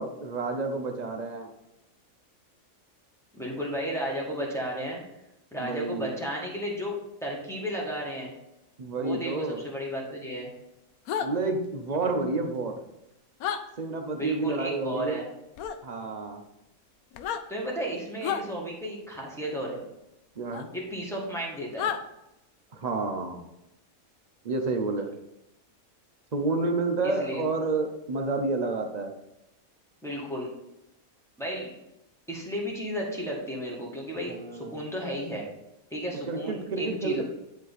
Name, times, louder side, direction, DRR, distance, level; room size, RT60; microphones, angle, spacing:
voice 1, 0.0-1.5 5.6-6.1 8.8-9.6 11.2-12.7 13.8-15.2 15.8-16.4 20.4-20.7 22.7-23.4 24.4-25.1 26.3-29.1 34.3-34.8 36.3-37.2, right 3 dB, 40° right, 4 dB, 0.7 m, -29 dB
voice 2, 3.3-5.0 5.5-8.3 9.0-10.5 14.2-15.2 17.5-19.8 20.7-21.9 27.0-27.4 30.0-30.5 31.4-31.7 32.3-35.5 35.9-37.2, equal, ahead, -3 dB, 1.6 m, -33 dB
sound 1, 11.1-11.3 13.4-13.6 15.6-15.8 17.1-17.4 18.2-18.4 20.5-20.6 21.8-22.0, left 8 dB, 85° left, 1.1 m, -30 dB
10.5 x 3.5 x 4.1 m, 0.90 s
omnidirectional pair, 1.5 m